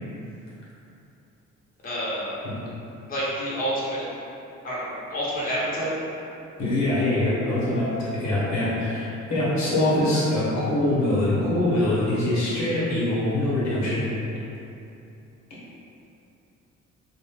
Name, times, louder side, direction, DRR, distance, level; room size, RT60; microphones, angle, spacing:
voice 1, 1.8-2.4 3.1-4.0 4.6-5.9, equal, 30° left, -8 dB, 0.8 m, -28 dB
voice 2, 6.6-14.0, left 1 dB, 65° left, -7 dB, 0.8 m, -23 dB
2.5 x 2.1 x 3.3 m, 2.8 s
cardioid pair, 90°, 30 cm